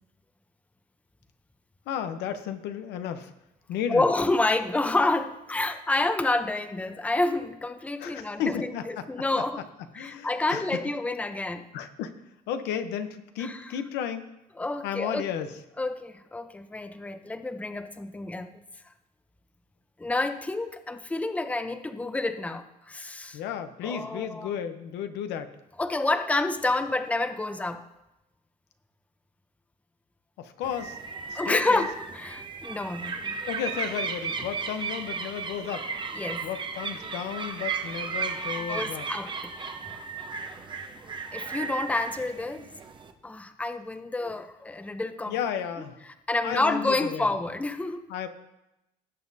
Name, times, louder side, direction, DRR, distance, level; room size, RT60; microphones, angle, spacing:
voice 1, 1.9-3.3 3.7-4.1 8.0-8.8 9.9-10.7 11.7-12.1 12.5-14.3 14.8-15.5 23.3-25.6 30.4-31.0 31.3-31.9 33.5-35.9 36.4-39.1 45.3-46.0 46.4-47.3 48.1-48.3, left 8 dB, 90° left, 9 dB, 0.8 m, -33 dB
voice 2, 3.9-9.6 9.9-11.7 13.4-13.6 14.6-15.4 15.8-18.5 20.0-23.4 23.8-24.5 25.8-27.8 31.3-33.4 36.1-36.5 38.6-39.4 41.3-42.6 43.2-45.4 46.3-48.1, left 2 dB, 10° left, 9 dB, 0.6 m, -29 dB
sound 1, 30.6-43.1, right 5 dB, 30° right, 0.9 m, -35 dB
17.5 x 7.3 x 2.7 m, 0.90 s
cardioid pair, 110°, 17 cm